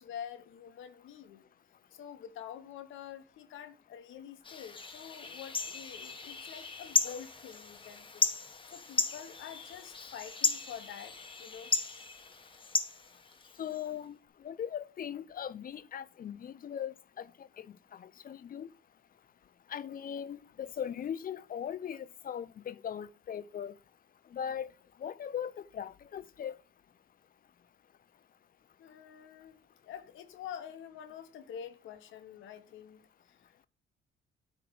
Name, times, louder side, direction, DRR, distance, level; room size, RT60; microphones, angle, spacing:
voice 1, 0.0-1.4 1.9-8.3 8.7-11.7 28.8-33.3, left 9 dB, 80° left, 1.0 m, -47 dB
sound 1, 4.4-13.8, left 4 dB, 25° left, 1.0 m, -35 dB
voice 2, 13.6-18.7 19.7-23.8 24.3-24.7 25.0-26.6, left 9 dB, 45° left, 0.5 m, -39 dB
8.9 x 3.2 x 6.2 m
cardioid pair, 90°, 20 cm